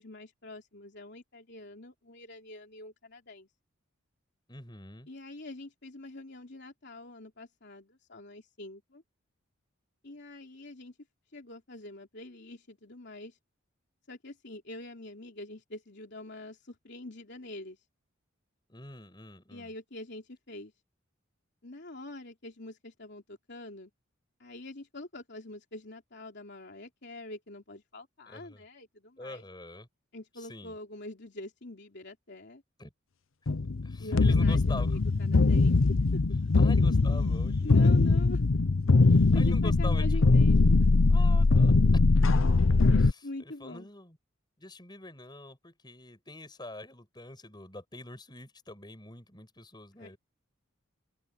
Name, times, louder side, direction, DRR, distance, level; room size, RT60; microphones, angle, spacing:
voice 1, 0.0-3.5 5.1-9.0 10.0-11.0 11.3-13.4 14.1-17.8 19.5-20.7 21.6-23.9 24.4-29.4 30.1-32.6 34.0-35.8 36.1-36.2 37.6-38.4 39.3-40.9 43.2-43.9 50.0-50.2, left 2 dB, 55° left, 3.3 m, -44 dB
voice 2, 4.5-5.1 18.7-19.7 28.3-28.6 29.2-29.9 30.4-30.7 32.8-32.9 33.8-34.9 36.6-37.9 39.0-40.2 41.1-41.8 43.0-44.2 44.6-50.2, left 2 dB, 20° left, 6.0 m, -45 dB
sound 1, 33.5-43.1, left 3 dB, 70° left, 0.7 m, -22 dB
open air
head